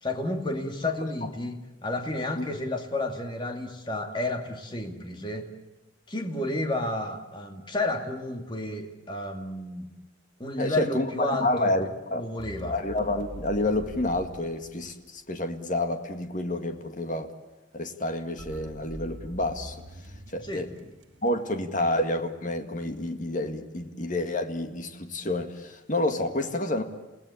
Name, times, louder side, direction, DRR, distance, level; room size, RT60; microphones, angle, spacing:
voice 1, 0.0-5.5 6.1-9.9 10.4-11.7 12.2-12.8 20.4-20.7, left 2 dB, 25° left, 4 dB, 2.4 m, -31 dB
voice 2, 10.6-12.3 12.7-17.3 17.7-19.8 20.3-20.7 21.2-26.8, left 1 dB, 40° left, 6 dB, 2.0 m, -29 dB
sound 1, 12.4-15.4 18.4-21.8, right 1 dB, 70° right, 1.8 m, -44 dB
29.0 x 18.5 x 8.5 m, 1.1 s
head